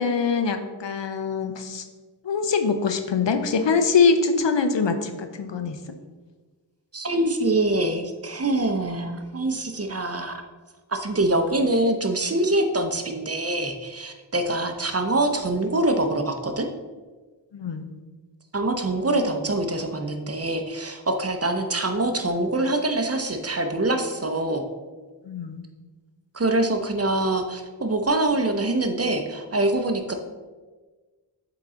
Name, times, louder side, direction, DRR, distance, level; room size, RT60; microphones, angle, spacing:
voice 1, 0.0-1.8 2.2-5.8 17.5-17.9 25.3-25.6, left 5 dB, 85° left, 8 dB, 0.6 m, -23 dB
voice 2, 6.9-10.4 10.9-16.7 18.5-24.6 26.3-30.1, right 2 dB, 35° right, 5 dB, 0.7 m, -24 dB
7.3 x 3.9 x 3.7 m, 1.3 s
wide cardioid pair, 55°, 43 cm